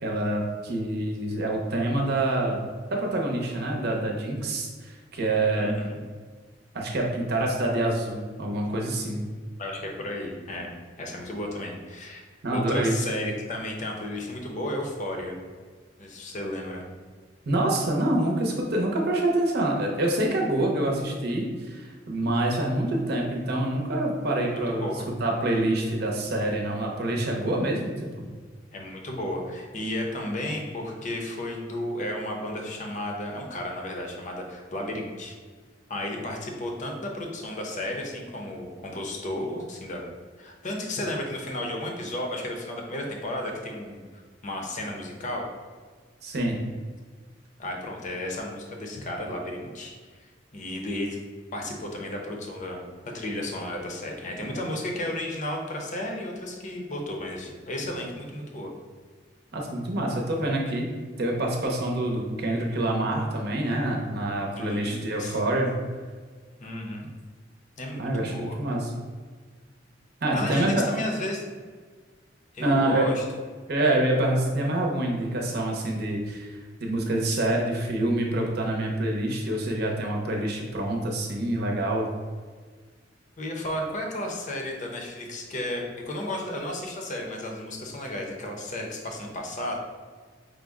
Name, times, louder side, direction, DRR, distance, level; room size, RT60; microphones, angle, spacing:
voice 1, 0.0-2.6 2.9-5.7 6.7-9.2 12.4-13.0 17.4-24.9 25.2-28.2 46.2-46.6 59.5-60.9 61.2-65.7 68.0-68.9 70.2-70.9 72.6-73.1 73.7-82.1, right 1 dB, 60° right, 0 dB, 0.7 m, -26 dB
voice 2, 5.6-6.0 9.6-10.7 11.0-12.2 12.5-15.4 16.0-16.8 24.4-25.1 28.7-35.4 35.9-40.0 40.4-44.0 44.4-45.5 47.6-49.9 50.2-51.2 51.5-58.7 64.6-65.4 66.6-67.1 67.8-68.6 70.3-71.4 72.5-73.2 83.4-89.7, left 1 dB, 40° left, 1 dB, 0.7 m, -33 dB
5.0 x 2.1 x 3.5 m, 1.5 s
head